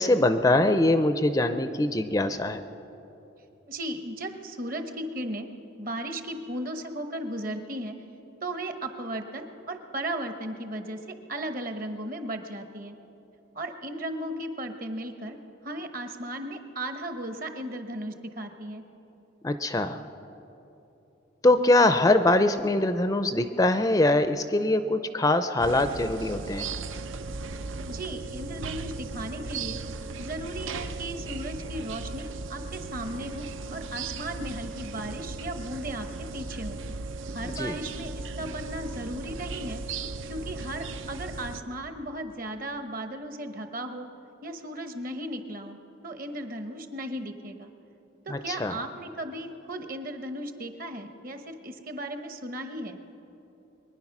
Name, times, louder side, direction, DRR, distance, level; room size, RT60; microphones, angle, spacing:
voice 1, 0.0-2.6 19.4-20.0 21.4-26.7 37.4-37.8 48.3-48.8, left 2 dB, 15° left, 10 dB, 0.4 m, -23 dB
voice 2, 3.7-5.5 5.8-8.0 8.4-12.9 13.5-15.4 15.6-18.8 27.9-29.8 30.2-33.4 33.7-36.1 36.3-36.8 37.3-39.8 40.2-44.1 44.4-45.8 46.0-47.7 48.2-53.0, right 1 dB, 45° right, 7 dB, 1.1 m, -36 dB
sound 1, 25.6-41.6, right 3 dB, 80° right, 0.6 m, -37 dB
23.5 x 10.5 x 6.0 m, 3.0 s
head